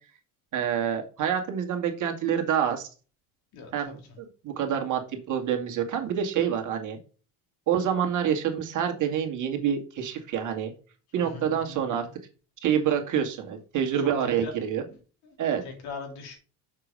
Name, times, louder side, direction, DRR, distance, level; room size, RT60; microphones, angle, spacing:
voice 1, 0.5-2.9 3.7-7.0 7.7-10.7 11.1-12.1 12.6-14.8 15.4-15.6, right 8 dB, 50° right, 2.2 m, -27 dB
voice 2, 3.5-3.9 11.2-11.8 14.2-14.5 14.9-15.0 15.6-16.4, left 4 dB, 65° left, 3.3 m, -40 dB
6.7 x 4.9 x 5.3 m
supercardioid pair, 95°, 39 cm